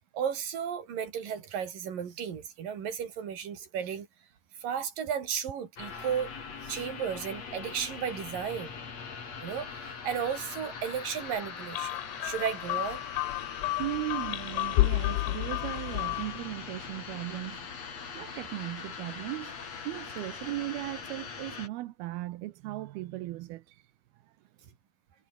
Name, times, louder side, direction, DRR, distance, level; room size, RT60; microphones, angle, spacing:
voice 1, 0.1-4.1 4.5-6.3 6.6-8.8 9.4-13.1, right 8 dB, 60° right, 4.6 m, -34 dB
sound 1, 5.8-21.7, left 5 dB, 40° left, 4.4 m, -42 dB
sound 2, 11.7-16.5, left 19 dB, 90° left, 1.8 m, -31 dB
voice 2, 13.8-17.6 18.2-23.8, right 17 dB, 80° right, 2.7 m, -37 dB
omnidirectional pair, 4.6 m